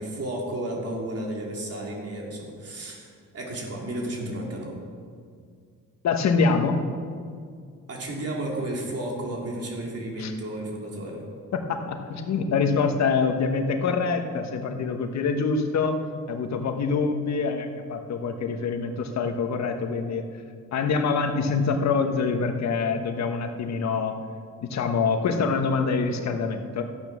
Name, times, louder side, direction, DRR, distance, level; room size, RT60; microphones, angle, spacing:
voice 1, 0.0-4.8 7.9-11.2, right 1 dB, 50° right, -1 dB, 3.4 m, -32 dB
voice 2, 6.0-6.8 10.2-10.3 11.5-16.0 16.3-20.2 20.7-24.2 24.6-26.8, left 5 dB, 60° left, 5 dB, 1.3 m, -25 dB
13.0 x 9.1 x 6.2 m, 2.2 s
cardioid pair, 90°, 30 cm